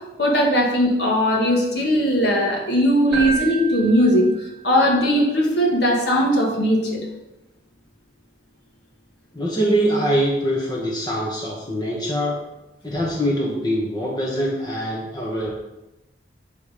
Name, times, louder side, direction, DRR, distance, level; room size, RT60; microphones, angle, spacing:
voice 1, 0.2-4.3 4.6-7.0, equal, 60° left, -1 dB, 1.4 m, -19 dB
Keyboard (musical), 3.1-4.9, right 4 dB, 10° right, 1.9 m, -30 dB
voice 2, 9.3-12.4 12.8-15.5, equal, 20° left, -3 dB, 0.8 m, -23 dB
6.9 x 3.5 x 4.9 m, 0.97 s
head